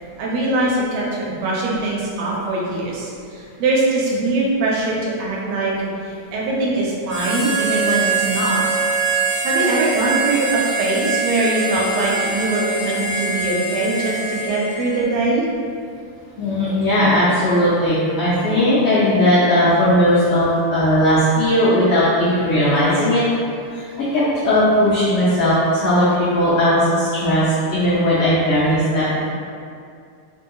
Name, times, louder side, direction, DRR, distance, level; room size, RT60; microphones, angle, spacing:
voice 1, 0.2-8.6 9.4-15.5, right 2 dB, 90° right, -4 dB, 2.2 m, -22 dB
Harmonica, 7.1-15.1, right 4 dB, 70° right, 1.9 m, -23 dB
voice 2, 16.4-23.2 23.7-23.8 24.1-26.1 26.3-29.3, equal, 90° left, -10 dB, 1.2 m, -17 dB
4.9 x 2.7 x 2.3 m, 2.3 s
omnidirectional pair, 3.4 m